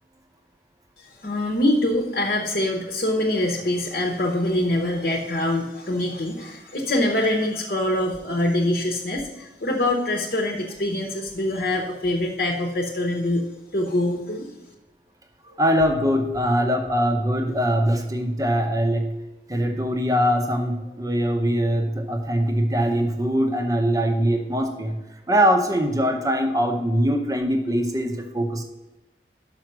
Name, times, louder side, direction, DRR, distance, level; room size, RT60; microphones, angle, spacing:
voice 1, 1.0-13.5 13.7-14.5, left 1 dB, 50° left, 0 dB, 0.9 m, -24 dB
voice 2, 15.5-19.2 19.5-25.0 25.3-28.6, equal, 20° right, 4 dB, 0.8 m, -22 dB
6.0 x 5.7 x 6.2 m, 1.0 s
head